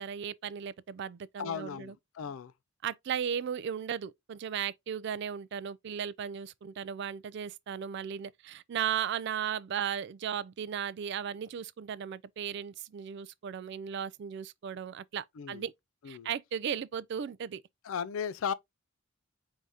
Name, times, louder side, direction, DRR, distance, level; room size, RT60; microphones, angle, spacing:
voice 1, 0.0-1.9 2.8-15.7 16.1-17.6, right 8 dB, 55° right, 0.3 m, -36 dB
voice 2, 1.4-2.5 15.4-15.6 16.0-16.3 17.8-18.5, left 7 dB, 75° left, 0.4 m, -36 dB
4.8 x 2.7 x 3.3 m
head